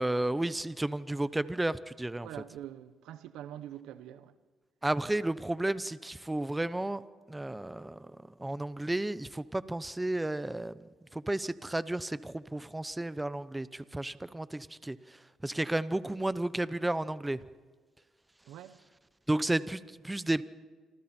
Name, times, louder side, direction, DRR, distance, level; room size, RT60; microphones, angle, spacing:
voice 1, 0.0-2.3 4.8-7.0 7.3-10.7 11.1-17.4 19.3-20.4, right 1 dB, 10° right, 0.8 m, -32 dB
voice 2, 2.2-4.3 18.5-18.8, right 11 dB, 90° right, 1.0 m, -45 dB
27.0 x 25.5 x 4.4 m
cardioid pair, 90°, 0 cm